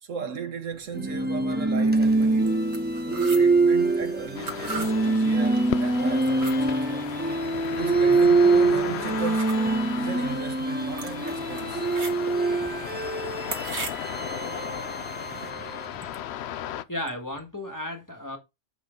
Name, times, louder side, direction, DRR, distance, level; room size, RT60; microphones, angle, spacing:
voice 1, 0.0-2.6 3.0-7.1 7.8-9.6 10.0-11.9 15.9-16.1 16.4-16.6, right 6 dB, 75° right, 1.6 m, -37 dB
sound 1, 0.9-16.0, right 3 dB, 10° right, 0.7 m, -24 dB
sound 2, 2.0-15.5, right 4 dB, 60° right, 1.7 m, -42 dB
sound 3, 4.4-16.8, left 11 dB, 65° left, 0.8 m, -36 dB
voice 2, 16.9-18.4, left 1 dB, 15° left, 1.7 m, -34 dB
8.1 x 6.1 x 3.9 m
omnidirectional pair, 1.3 m